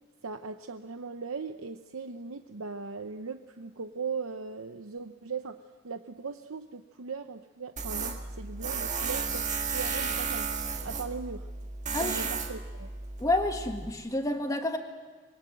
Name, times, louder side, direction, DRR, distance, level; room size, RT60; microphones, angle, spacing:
voice 1, 0.2-5.6 5.8-10.5 10.8-11.5 12.0-12.9, right 5 dB, 90° right, 8 dB, 0.8 m, -39 dB
Tools, 7.8-13.9, right 5 dB, 35° right, 1.8 m, -33 dB
voice 2, 13.2-14.8, left 2 dB, 15° left, 4 dB, 1.6 m, -29 dB
26.0 x 22.5 x 7.8 m, 1.3 s
head